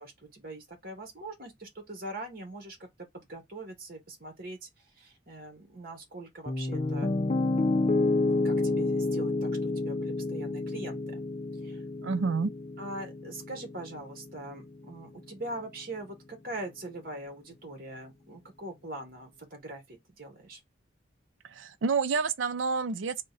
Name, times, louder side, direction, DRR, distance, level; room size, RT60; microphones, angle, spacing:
voice 1, 0.3-4.6 5.0-7.1 8.3-11.0 11.6-11.8 12.8-20.6, right 2 dB, 50° right, 1.3 m, -42 dB
Piano, 6.5-14.6, left 2 dB, 30° left, 0.4 m, -29 dB
voice 2, 12.0-12.5 21.5-23.2, right 4 dB, 85° right, 0.5 m, -28 dB
3.7 x 2.2 x 3.9 m
head